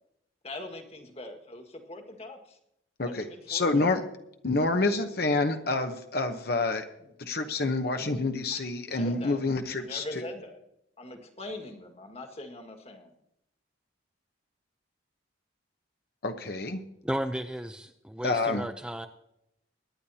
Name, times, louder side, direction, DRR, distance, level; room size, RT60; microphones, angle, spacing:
voice 1, 0.4-2.6 3.0-4.0 8.5-8.6 8.9-9.4 9.8-10.6 11.0-13.2, left 1 dB, 35° left, 1.7 m, -42 dB
voice 2, 3.0-4.0 4.4-6.8 7.2-10.0 16.2-16.8 18.2-18.6, left 3 dB, 55° left, 0.9 m, -28 dB
voice 3, 17.0-19.1, equal, 5° right, 0.5 m, -34 dB
23.5 x 10.5 x 2.8 m
head